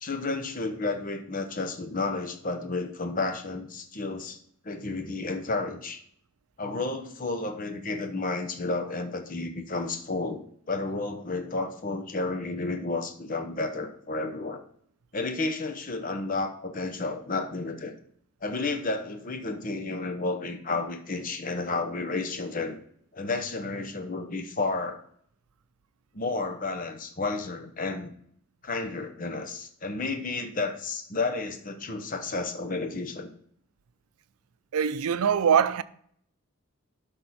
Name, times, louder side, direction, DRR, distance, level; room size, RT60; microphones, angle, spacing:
voice 1, 0.0-4.4 4.6-6.0 6.6-10.4 10.7-14.6 15.1-17.9 18.4-22.8 23.1-25.0 26.1-28.1 28.6-33.3, left 3 dB, 40° left, 0.9 m, -31 dB
voice 2, 34.7-35.8, right 7 dB, 90° right, 0.5 m, -23 dB
12.0 x 5.4 x 4.2 m
head